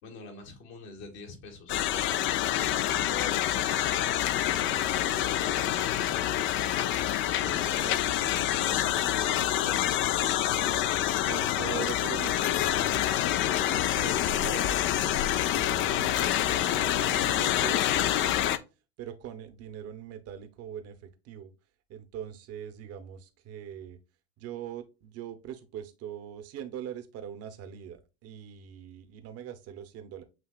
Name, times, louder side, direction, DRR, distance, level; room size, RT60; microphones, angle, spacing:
voice 1, 0.0-2.2 2.5-3.7 4.5-7.0 7.4-10.5, left 3 dB, 70° left, 2.1 m, -45 dB
sound 1, 1.7-18.6, left 12 dB, 35° left, 0.4 m, -27 dB
voice 2, 11.2-13.0 13.5-18.5 19.0-21.5 21.9-24.0 24.4-30.2, right 10 dB, 45° right, 0.9 m, -42 dB
7.5 x 2.8 x 2.4 m
hypercardioid pair, 100°, 34 cm